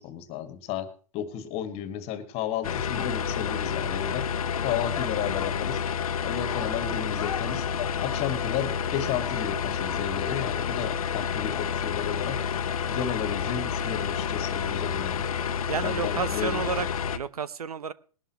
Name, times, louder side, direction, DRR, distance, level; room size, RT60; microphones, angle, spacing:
voice 1, 0.0-4.3 4.6-5.8 6.2-7.7 8.0-12.4 12.9-15.3 15.8-16.6, left 9 dB, 35° left, 1.9 m, -33 dB
sound 1, 2.6-17.2, left 7 dB, 70° left, 1.0 m, -29 dB
sound 2, 4.3-11.4, right 4 dB, 45° right, 6.1 m, -57 dB
voice 2, 15.7-16.9 17.1-17.9, right 6 dB, 85° right, 0.9 m, -31 dB
20.5 x 11.5 x 3.0 m
hypercardioid pair, 125°, 19 cm